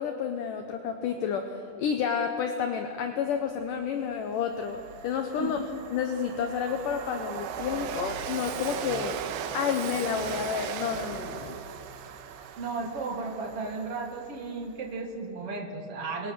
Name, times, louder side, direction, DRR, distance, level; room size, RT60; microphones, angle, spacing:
voice 1, 0.0-5.6 5.9-9.2 9.5-11.6, left 7 dB, 70° left, 5 dB, 2.0 m, -30 dB
Train, 3.8-3.9 4.3-14.7, right 8 dB, 80° right, 3.2 m, -38 dB
voice 2, 12.6-16.3, right 3 dB, 45° right, 3 dB, 2.2 m, -34 dB
27.5 x 24.0 x 6.3 m, 2.7 s
omnidirectional pair, 5.1 m